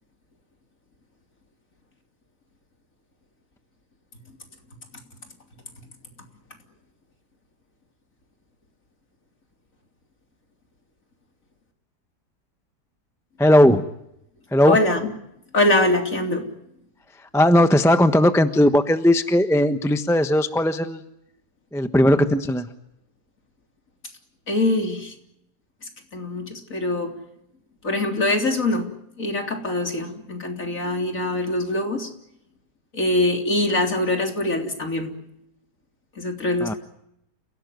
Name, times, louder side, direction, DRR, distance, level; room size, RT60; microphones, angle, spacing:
voice 1, 13.4-13.8 14.5-14.8 17.3-21.0 21.7-22.7 36.6-36.7, left 1 dB, ahead, 9 dB, 1.0 m, -17 dB
voice 2, 14.7-15.1 15.5-16.5 24.5-25.1 26.1-27.2 27.8-32.1 32.9-35.1 36.2-36.8, left 2 dB, 50° left, 4 dB, 3.9 m, -23 dB
30.0 x 17.5 x 9.4 m, 0.80 s
omnidirectional pair, 1.8 m